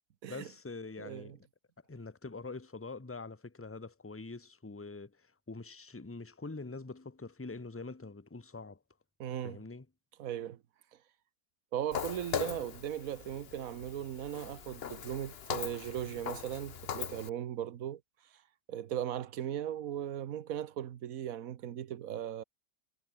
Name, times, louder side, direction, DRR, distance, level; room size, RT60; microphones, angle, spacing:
voice 1, 0.3-1.4 1.9-8.8 9.4-9.9, left 3 dB, 10° left, 0.8 m, -44 dB
voice 2, 1.0-1.4 9.2-9.6 10.2-10.6 11.7-18.0 18.7-22.4, right 10 dB, 65° right, 1.3 m, -38 dB
Walk footsteps, 11.9-17.3, left 8 dB, 45° left, 1.0 m, -40 dB
omnidirectional pair, 1.6 m